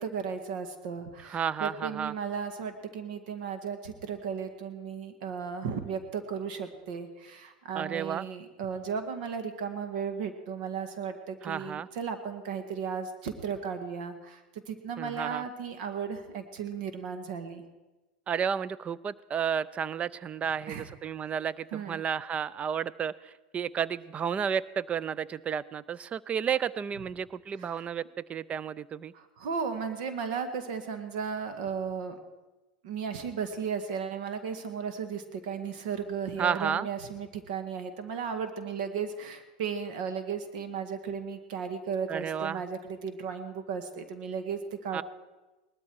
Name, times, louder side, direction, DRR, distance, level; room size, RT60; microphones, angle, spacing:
voice 1, 0.0-17.6 20.7-20.9 21.7-22.0 27.6-27.9 29.1-32.2 32.8-45.0, right 6 dB, 65° right, 8 dB, 1.7 m, -35 dB
voice 2, 1.3-2.1 7.7-8.3 11.4-11.9 15.0-15.4 18.3-28.0 28.3-29.1 36.4-36.9 42.1-42.6 44.9-45.0, right 7 dB, 25° right, 20 dB, 0.5 m, -32 dB
19.0 x 13.0 x 4.7 m, 1.1 s
hypercardioid pair, 110°, 5 cm